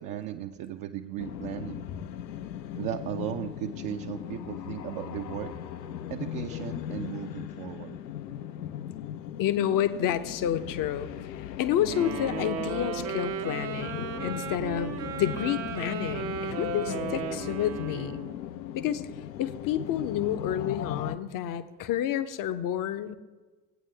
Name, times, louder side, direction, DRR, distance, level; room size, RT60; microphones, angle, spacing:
voice 1, 0.0-1.9 2.8-5.5 6.1-8.0, right 11 dB, 45° right, 4 dB, 0.5 m, -36 dB
sound 1, 1.2-21.2, left 10 dB, 80° left, 0.6 m, -38 dB
voice 2, 9.4-11.1 11.6-18.3 18.7-19.0 19.4-23.2, left 10 dB, 40° left, 12 dB, 0.7 m, -29 dB
Wind instrument woodwind instrument, 11.9-18.3, right 6 dB, 80° right, 1.1 m, -35 dB
15.0 x 8.8 x 3.3 m, 1.3 s
figure-of-eight pair, 55°, 50 cm